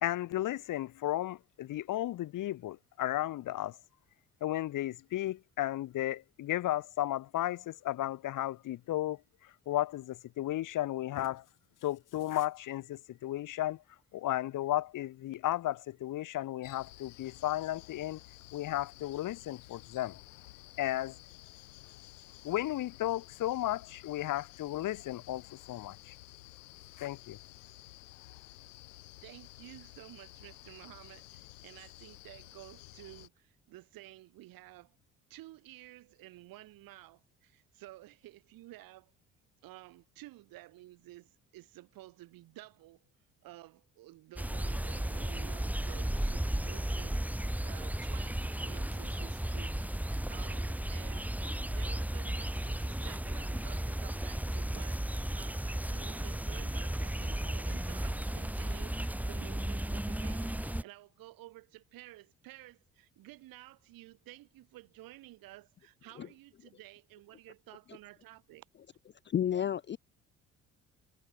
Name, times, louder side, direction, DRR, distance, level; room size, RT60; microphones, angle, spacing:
voice 1, 0.0-3.7 4.4-9.2 9.7-11.4 11.8-13.8 14.1-18.2 18.5-20.2 20.8-21.1 22.4-26.0 27.0-27.4, left 14 dB, 55° left, 2.0 m, -34 dB
sound 1, 16.6-33.3, left 18 dB, 75° left, 2.7 m, -53 dB
voice 2, 29.2-35.0 35.3-39.1 39.6-43.0 43.4-51.3 51.7-68.7, right 17 dB, 65° right, 4.6 m, -53 dB
sound 2, 44.4-60.8, right 1 dB, 5° right, 2.1 m, -34 dB
voice 3, 69.3-70.0, left 9 dB, 30° left, 0.6 m, -31 dB
figure-of-eight pair, 50°, 38 cm